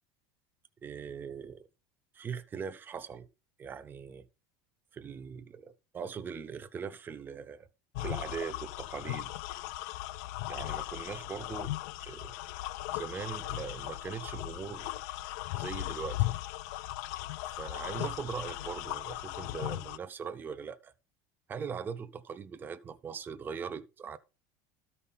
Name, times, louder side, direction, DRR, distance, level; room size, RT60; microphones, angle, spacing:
voice 1, 0.8-1.7 2.1-3.3 3.6-4.3 4.9-7.7 8.0-9.3 10.5-11.7 12.0-12.3 12.9-14.9 15.5-16.3 17.4-20.9 21.5-24.2, right 6 dB, 20° right, 0.7 m, -40 dB
sound 1, 7.9-20.0, left 17 dB, 70° left, 0.4 m, -37 dB
13.0 x 5.6 x 4.1 m
cardioid pair, 160°, 10 cm